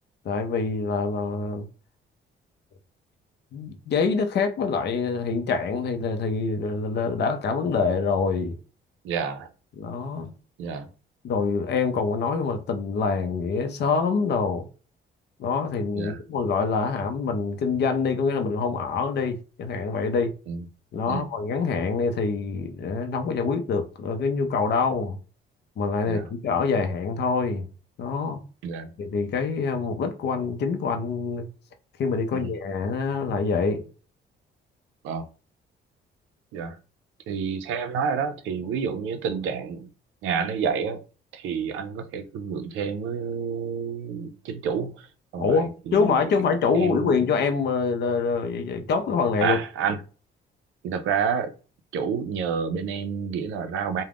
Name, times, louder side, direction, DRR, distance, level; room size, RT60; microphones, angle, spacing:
voice 1, 0.2-1.7 3.5-8.6 9.8-10.3 11.2-14.7 15.4-20.3 20.9-25.2 25.8-27.6 28.0-28.4 29.0-31.5 32.0-33.8 45.4-49.6, left 5 dB, 60° left, 0.5 m, -25 dB
voice 2, 9.0-9.5 10.6-10.9 15.9-16.2 20.5-20.7 21.1-21.3 26.1-26.3 28.6-28.9 32.3-32.5 35.0-35.3 36.5-36.8 37.3-39.9 40.2-41.0 41.3-45.1 45.3-46.2 46.8-47.1 49.4-50.0 50.8-51.5 51.9-54.0, right 6 dB, 90° right, 0.5 m, -29 dB
2.4 x 2.1 x 3.4 m
cardioid pair, 90°, 20 cm